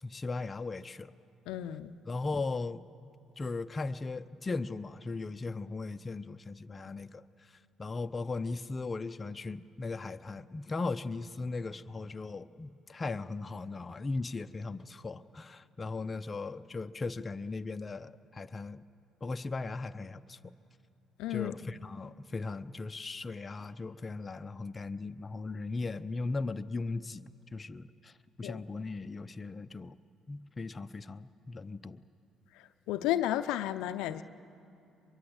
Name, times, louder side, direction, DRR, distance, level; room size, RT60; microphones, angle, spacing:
voice 1, 0.0-1.1 2.1-2.8 3.4-18.8 19.2-20.5 21.3-28.1 28.4-30.0 30.3-32.0, left 3 dB, 30° left, 0.7 m, -38 dB
voice 2, 1.5-1.9 6.8-6.9 21.2-21.5 28.4-28.6 32.9-34.2, left 13 dB, 80° left, 0.6 m, -32 dB
23.5 x 22.5 x 8.0 m
supercardioid pair, 60°, 0 cm